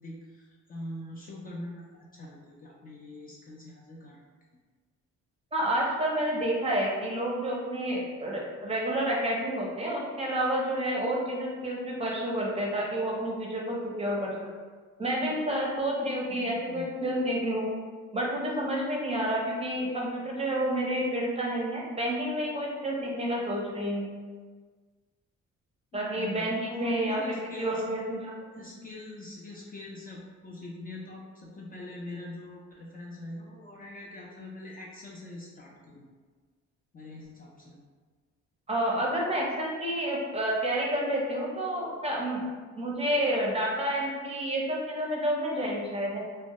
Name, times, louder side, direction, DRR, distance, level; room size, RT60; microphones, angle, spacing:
voice 1, 0.0-4.2 16.3-16.9 25.9-27.8 28.5-36.1 36.9-37.8, left 2 dB, 30° left, -4 dB, 0.4 m, -43 dB
voice 2, 5.5-14.3 15.0-17.7 18.1-24.1 25.9-27.2 27.6-28.3 38.7-42.4 42.8-46.2, right 1 dB, 20° right, -3 dB, 0.5 m, -29 dB
2.1 x 2.1 x 2.8 m, 1.5 s
cardioid pair, 90°, 30 cm